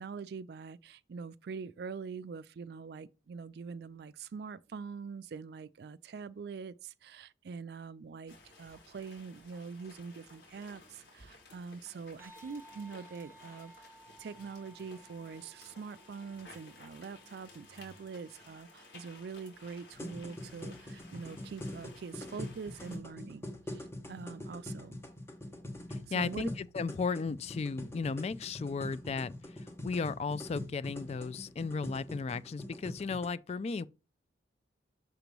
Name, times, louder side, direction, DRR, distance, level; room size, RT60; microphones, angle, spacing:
voice 1, 0.0-13.9 14.2-25.0 26.1-26.5, right 5 dB, 60° right, 0.3 m, -44 dB
sound 1, 8.3-23.0, left 2 dB, 70° left, 2.2 m, -56 dB
sound 2, 12.2-20.9, right 2 dB, 10° right, 0.9 m, -60 dB
sound 3, 19.9-33.3, left 1 dB, 15° left, 1.2 m, -44 dB
voice 2, 25.9-29.3 29.8-33.9, left 4 dB, 35° left, 0.3 m, -35 dB
6.7 x 3.1 x 5.2 m
head